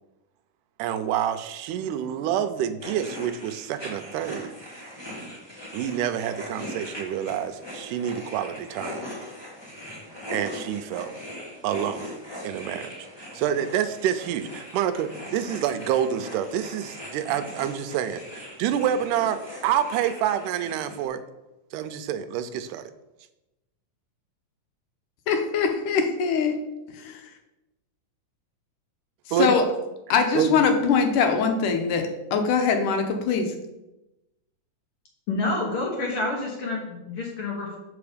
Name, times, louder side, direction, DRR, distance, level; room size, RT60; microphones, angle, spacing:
voice 1, 0.8-4.5 5.7-9.0 10.3-11.1 11.6-12.2 12.4-21.2 21.7-22.8 29.3-29.7 30.3-30.6, right 9 dB, 85° right, 10 dB, 2.1 m, -27 dB
sound 1, 2.8-21.1, left 1 dB, 20° left, 0.7 m, -40 dB
voice 2, 25.3-26.6 26.9-27.2 29.4-29.6 30.1-33.5, left 5 dB, 80° left, 5 dB, 2.3 m, -22 dB
voice 3, 35.3-37.8, left 3 dB, 60° left, -1 dB, 1.6 m, -28 dB
7.0 x 5.2 x 5.0 m, 0.96 s
omnidirectional pair, 3.6 m